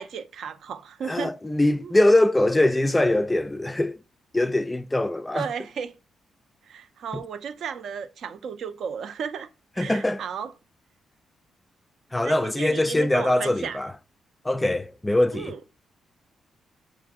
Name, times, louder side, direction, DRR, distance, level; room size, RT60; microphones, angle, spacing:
voice 1, 0.0-1.3 1.8-1.9 5.3-5.9 6.7-9.5 9.8-10.5 12.2-13.8 15.3-15.6, right 7 dB, 75° right, 0.5 m, -34 dB
voice 2, 1.1-4.0 4.3-5.5 7.1-7.2 9.8-10.2 12.1-13.9 14.4-15.5, left 1 dB, 15° left, 0.3 m, -22 dB
4.7 x 2.5 x 3.5 m
cardioid pair, 70°, 0 cm